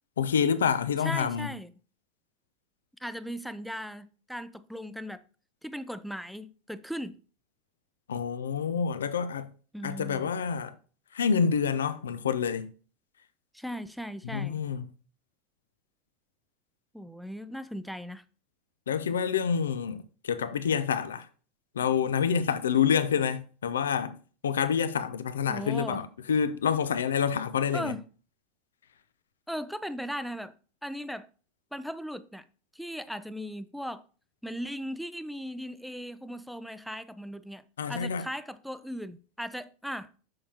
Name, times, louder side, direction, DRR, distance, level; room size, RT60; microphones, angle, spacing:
voice 1, 0.2-1.5 8.1-9.5 9.8-10.7 11.1-12.7 14.3-14.8 18.9-21.3 21.8-28.0 37.8-38.3, left 7 dB, 80° left, 0.5 m, -27 dB
voice 2, 1.0-1.7 3.0-5.2 5.6-7.2 9.7-10.3 13.5-14.6 16.9-18.2 25.5-26.0 27.7-28.0 29.5-30.5 30.8-31.3 31.7-32.4 32.7-34.0 34.4-40.1, equal, ahead, 0.5 m, -38 dB
6.5 x 5.6 x 2.9 m
hypercardioid pair, 85°, 0 cm